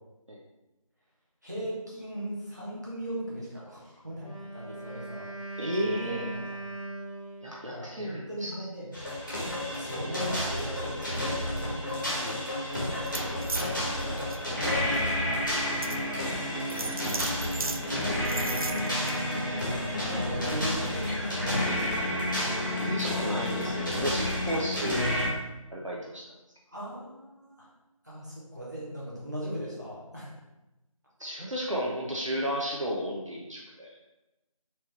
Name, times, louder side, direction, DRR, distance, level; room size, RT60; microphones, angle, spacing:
voice 1, 1.4-6.7 7.7-8.9 9.7-11.7 12.1-12.2 13.8-16.3 20.1-21.9 26.7-27.7 28.0-30.3, equal, 30° right, -7 dB, 1.1 m, -39 dB
Wind instrument woodwind instrument, 4.1-7.6, right 2 dB, 70° left, 1.4 m, -39 dB
voice 2, 5.6-6.2 7.4-8.5 12.2-12.4 16.9-17.0 18.3-18.6 22.7-25.2 25.7-26.2 31.2-34.0, equal, 60° right, -3 dB, 0.8 m, -33 dB
sound 1, 8.9-25.3, left 1 dB, 35° left, 1.2 m, -30 dB
sound 2, 13.0-13.7 14.2-14.4 15.0-15.1 15.8-16.0 16.7-17.8 18.2-19.1, right 3 dB, 75° right, 0.4 m, -35 dB
4.4 x 3.3 x 3.2 m, 1.0 s
figure-of-eight pair, 180°, 18 cm